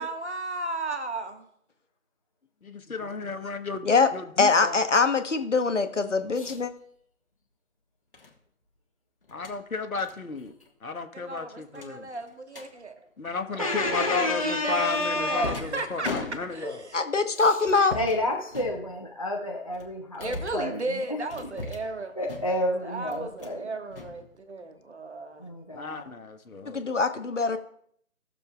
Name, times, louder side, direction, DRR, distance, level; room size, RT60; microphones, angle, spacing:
voice 1, 0.0-1.5 11.1-13.0 13.5-16.1 16.5-17.0 20.2-22.1 22.8-25.5, right 2 dB, 50° right, 6 dB, 1.6 m, -34 dB
voice 2, 2.6-4.8 9.3-10.5 10.8-12.1 13.2-16.9 25.7-26.9, left 4 dB, 80° left, 7 dB, 1.3 m, -34 dB
voice 3, 4.4-6.7 16.9-18.0 26.7-27.6, left 4 dB, 60° left, 8 dB, 1.1 m, -23 dB
sound 1, 6.4-6.6 8.1-8.3 9.2-9.6 10.0-10.2 10.5-10.7 11.0-11.1 11.7-12.7 13.8-14.2 14.9-16.8 17.6-18.2 18.5-19.2 19.7-20.7 21.3-22.0 22.2-22.7 23.1-23.6 23.9-24.7, left 3 dB, 40° left, 1.4 m, -39 dB
voice 4, 13.6-15.5 17.4-17.5 17.9-20.8 21.1-21.2 22.2-23.7 25.4-26.0, left 1 dB, 25° left, -1 dB, 0.6 m, -30 dB
18.5 x 6.9 x 2.3 m, 0.67 s
figure-of-eight pair, 165°, 42 cm